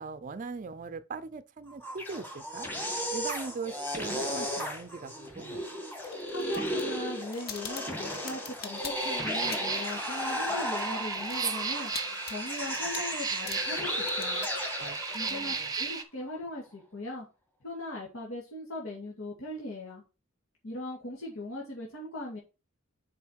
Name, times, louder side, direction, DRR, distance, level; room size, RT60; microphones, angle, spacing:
voice 1, 0.0-2.7 3.1-5.7 14.8-15.0 15.2-15.7, right 4 dB, 40° right, 0.4 m, -40 dB
sound 1, 1.7-15.8, equal, 10° left, 1.7 m, -35 dB
sound 2, 6.0-9.9 10.2-16.0, left 7 dB, 50° left, 1.0 m, -45 dB
voice 2, 6.3-11.9 12.3-14.5 15.1-17.3 17.6-20.0 20.6-22.4, left 1 dB, 80° left, 2.2 m, -39 dB
sound 3, 9.0-16.0, right 4 dB, 20° right, 0.8 m, -35 dB
7.0 x 4.9 x 4.6 m
head